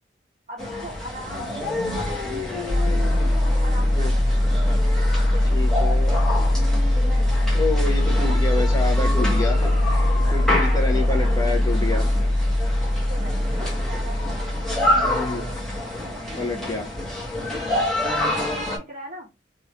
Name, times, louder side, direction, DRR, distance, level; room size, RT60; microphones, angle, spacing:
voice 1, 0.5-3.2 3.5-4.5 5.2-5.6 8.2-8.4 10.5-11.6 13.1-16.2 18.1-19.3, right 1 dB, 40° right, 1.3 m, -40 dB
sound 1, 0.6-18.8, left 1 dB, 5° left, 1.1 m, -28 dB
sound 2, 2.7-15.8, left 1 dB, 75° right, 1.2 m, -21 dB
voice 2, 5.5-6.1 7.5-10.0 10.3-12.1 15.1-15.4 16.4-16.9, left 2 dB, 20° left, 0.8 m, -28 dB
3.5 x 2.6 x 3.1 m
head